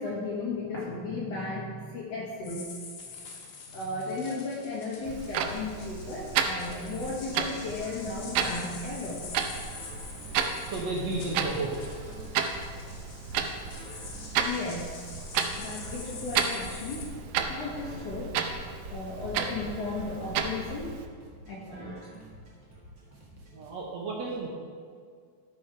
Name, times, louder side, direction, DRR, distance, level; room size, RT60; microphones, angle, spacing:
voice 1, 0.0-2.7 3.7-9.3 14.4-15.0 15.3-18.3 18.9-20.9 21.5-21.9, left 3 dB, 60° left, -5 dB, 1.7 m, -35 dB
sound 1, 2.4-17.1, left 4 dB, 80° left, 3.3 m, -46 dB
Clock, 5.1-21.1, right 6 dB, 80° right, 2.3 m, -33 dB
sound 2, 7.7-23.7, right 1 dB, 40° right, 1.8 m, -51 dB
voice 2, 10.7-11.7 23.5-24.5, right 2 dB, 60° right, -3 dB, 2.0 m, -32 dB
12.5 x 6.3 x 4.6 m, 2.1 s
omnidirectional pair, 4.1 m